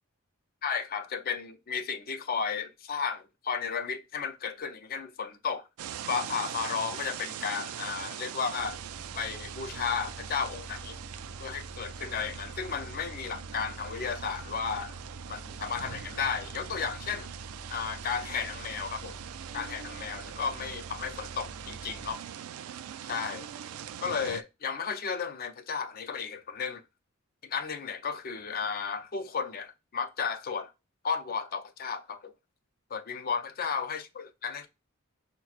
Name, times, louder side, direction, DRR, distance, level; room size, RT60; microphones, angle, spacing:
voice 1, 0.6-5.7 6.1-8.8 9.1-11.0 11.4-15.0 15.3-17.3 17.7-19.2 19.5-22.2 23.1-23.5 24.0-26.8 27.4-30.7 31.0-32.3 32.9-34.7, left 6 dB, 45° left, 0.5 m, -33 dB
sound 1, 5.8-24.4, right 10 dB, 85° right, 0.3 m, -42 dB
sound 2, 8.5-22.1, right 1 dB, 45° right, 1.3 m, -46 dB
5.7 x 2.2 x 2.3 m
head